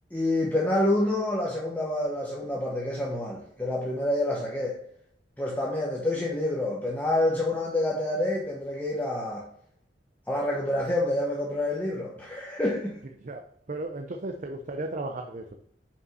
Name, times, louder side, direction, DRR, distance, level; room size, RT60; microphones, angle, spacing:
voice 1, 0.1-4.8 5.4-9.4 10.3-13.0, left 1 dB, 10° left, -3 dB, 1.1 m, -27 dB
voice 2, 13.7-15.6, right 2 dB, 45° right, 4 dB, 0.7 m, -35 dB
5.5 x 5.4 x 5.5 m, 0.68 s
head